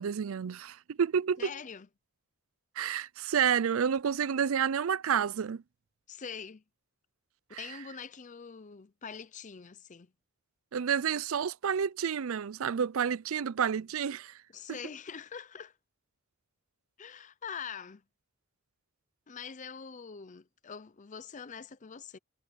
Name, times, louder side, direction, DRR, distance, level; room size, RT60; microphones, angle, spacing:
voice 1, 0.0-1.5 2.8-5.6 7.5-7.6 10.7-14.4, right 7 dB, 65° right, 0.4 m, -29 dB
voice 2, 1.4-1.9 6.1-6.6 7.5-10.1 14.5-15.8 17.0-18.0 19.3-22.2, left 6 dB, 35° left, 0.5 m, -44 dB
head